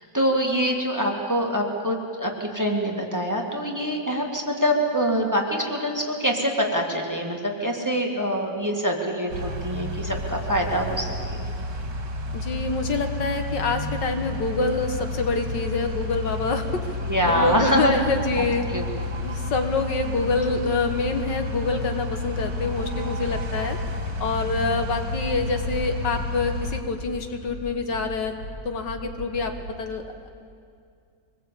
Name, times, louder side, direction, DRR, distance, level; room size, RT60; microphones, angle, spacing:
voice 1, 0.1-11.4 17.1-18.0 18.4-18.8, equal, 10° right, 1 dB, 2.2 m, -25 dB
sound 1, 9.3-26.8, left 2 dB, 55° right, 2.3 m, -31 dB
voice 2, 12.3-16.9 17.2-18.6 19.2-23.8 24.2-28.3 28.7-29.5 29.8-30.3, left 3 dB, 75° left, 6 dB, 2.1 m, -26 dB
sound 2, 22.3-29.8, right 1 dB, 45° left, 5.3 m, -39 dB
24.0 x 20.0 x 8.5 m, 2.3 s
omnidirectional pair, 1.9 m